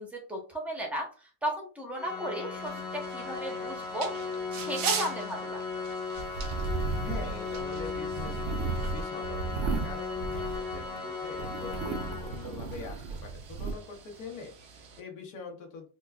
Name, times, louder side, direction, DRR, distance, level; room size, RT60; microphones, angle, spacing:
voice 1, 0.0-4.1 4.5-5.6, equal, ahead, -1 dB, 0.6 m, -35 dB
Organ, 1.9-12.8, left 4 dB, 45° left, 1.5 m, -37 dB
sound 1, 2.5-15.0, right 7 dB, 85° right, 1.2 m, -42 dB
sound 2, 6.2-11.0 11.3-13.7, right 4 dB, 65° right, 0.8 m, -35 dB
voice 2, 7.0-9.5 9.8-15.9, left 4 dB, 75° left, 2 dB, 1.3 m, -44 dB
4.3 x 2.2 x 2.3 m, 0.35 s
omnidirectional pair, 1.6 m